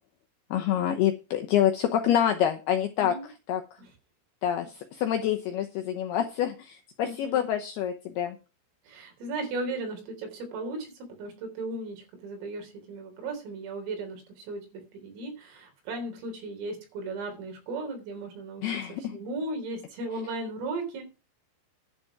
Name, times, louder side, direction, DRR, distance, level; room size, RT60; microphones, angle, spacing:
voice 1, 0.5-3.2 3.5-3.6 4.4-8.4 18.6-19.2, left 10 dB, 85° left, 4 dB, 2.3 m, -27 dB
voice 2, 3.0-3.3 3.8-3.9 7.0-7.5 8.9-18.6 19.0-21.0, right 2 dB, 90° right, 3 dB, 6.2 m, -36 dB
11.5 x 7.1 x 5.9 m, 0.31 s
omnidirectional pair, 5.7 m